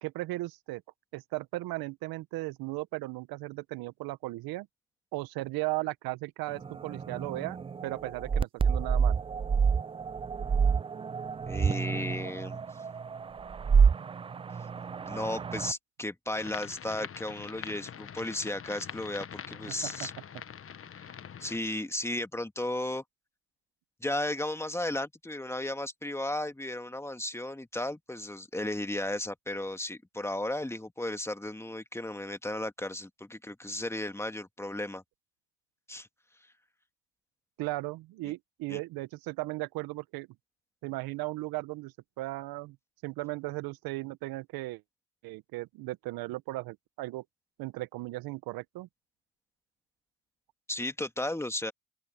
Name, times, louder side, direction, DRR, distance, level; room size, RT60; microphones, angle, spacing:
voice 1, 0.0-0.8 1.1-4.7 5.1-7.6 7.8-9.2 19.8-20.1 37.6-40.3 40.8-42.8 43.0-44.8 45.2-47.2 47.6-48.9, right 20 dB, 65° right, 1.7 m, -36 dB
sound 1, 6.5-15.7, right 6 dB, 15° right, 0.4 m, -28 dB
voice 2, 11.5-12.6 15.1-20.1 20.9-21.1 21.4-23.0 24.0-35.0 35.9-36.1 38.7-38.8 50.7-51.7, left 1 dB, 5° left, 2.1 m, -34 dB
sound 2, 16.3-21.6, left 8 dB, 35° left, 1.4 m, -44 dB
open air
hypercardioid pair, 70°, 38 cm